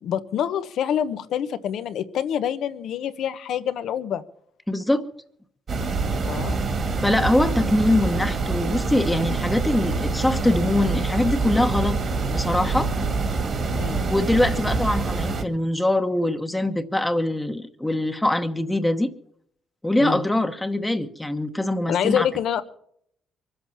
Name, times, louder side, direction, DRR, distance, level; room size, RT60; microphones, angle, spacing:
voice 1, 0.0-4.2 6.3-6.5 13.7-14.1 20.0-20.2 21.9-22.6, left 9 dB, 75° left, 12 dB, 1.0 m, -26 dB
voice 2, 4.7-5.1 7.0-12.0 12.3-12.9 14.1-19.1 19.8-22.3, left 1 dB, 10° left, 7 dB, 1.1 m, -23 dB
sound 1, 5.7-15.4, right 3 dB, 50° right, 2.1 m, -25 dB
23.5 x 7.9 x 7.2 m, 0.69 s
cardioid pair, 90°, 0 cm